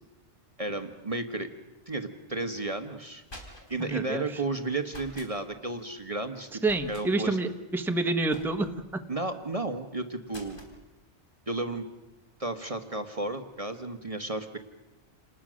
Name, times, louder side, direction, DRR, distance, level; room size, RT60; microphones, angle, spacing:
voice 1, 0.6-1.5 1.9-3.2 3.7-6.6 6.9-7.4 9.1-10.6 11.5-11.9 12.4-14.6, right 2 dB, 30° right, 7 dB, 1.3 m, -33 dB
sound 1, 3.0-3.9 4.9-5.3 6.6-7.1 8.3-8.8 10.3-10.8, equal, 50° left, 4.1 m, -47 dB
voice 2, 3.8-4.2 6.6-8.7, right 2 dB, ahead, 6 dB, 1.2 m, -28 dB
28.5 x 20.0 x 6.4 m, 1.0 s
omnidirectional pair, 1.2 m